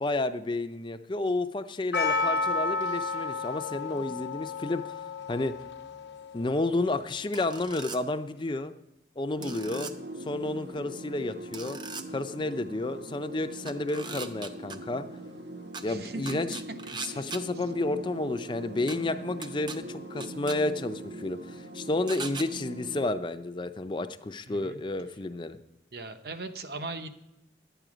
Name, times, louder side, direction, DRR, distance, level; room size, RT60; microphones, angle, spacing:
voice 1, 0.0-5.0 5.3-5.5 6.3-8.7 9.2-9.9 10.2-11.8 12.1-15.0 15.8-16.6 17.0-25.6, left 2 dB, 25° left, 10 dB, 0.5 m, -31 dB
Percussion, 1.9-6.9, left 3 dB, 75° left, 1.0 m, -32 dB
sound 1, 7.3-8.0 9.4-9.9 11.5-12.0 13.7-14.8 15.7-15.8 16.3-17.4 18.9-19.0 19.4-19.8 20.2-20.6 22.1-22.5, right 4 dB, 25° right, 0.6 m, -39 dB
sound 2, 9.4-23.1, right 1 dB, 75° right, 1.2 m, -42 dB
voice 2, 15.9-16.4 17.1-17.3 24.5-24.8 25.9-27.1, right 3 dB, 60° right, 8 dB, 0.9 m, -39 dB
11.5 x 9.1 x 5.0 m, 0.92 s
head